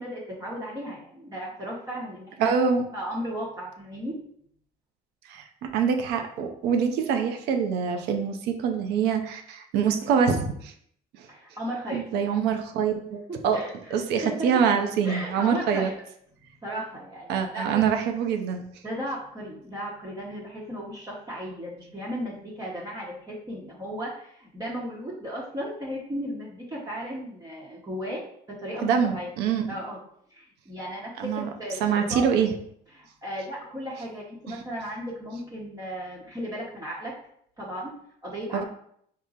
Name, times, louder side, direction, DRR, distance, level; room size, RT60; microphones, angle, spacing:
voice 1, 0.0-2.5 2.9-4.2 11.3-12.1 13.3-13.9 14.2-14.5 15.0-15.9 16.6-17.9 18.8-28.2 28.5-29.3 29.7-30.0 30.3-32.3 32.9-37.1 37.6-37.9 38.2-38.6, equal, 20° right, -5 dB, 0.8 m, -35 dB
voice 2, 2.4-2.8 5.3-10.7 11.9-13.6 13.9-15.9 17.3-18.6 28.8-29.7 31.2-31.5 31.8-32.5 34.5-34.6 38.5-38.6, right 7 dB, 85° right, 5 dB, 0.5 m, -25 dB
3.7 x 2.0 x 4.0 m, 0.68 s
cardioid pair, 110°, 17 cm